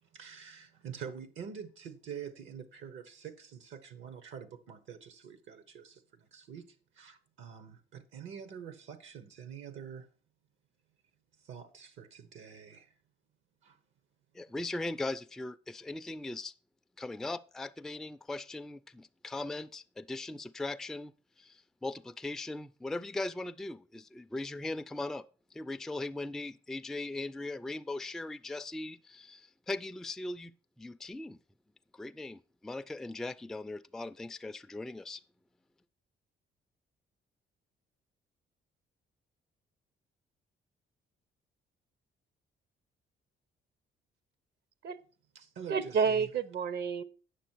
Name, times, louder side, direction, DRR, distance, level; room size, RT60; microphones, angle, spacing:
voice 1, 0.0-10.1 11.4-12.9 13.6-13.8 45.3-46.3, right 7 dB, 80° right, 1.1 m, -46 dB
voice 2, 14.3-16.5 17.0-21.1 21.4-25.2 25.5-30.5 30.8-31.4 31.9-35.2, left 2 dB, ahead, 0.3 m, -39 dB
voice 3, 45.7-47.0, right 6 dB, 55° right, 0.7 m, -30 dB
9.2 x 6.4 x 4.5 m
cardioid pair, 90°, 20 cm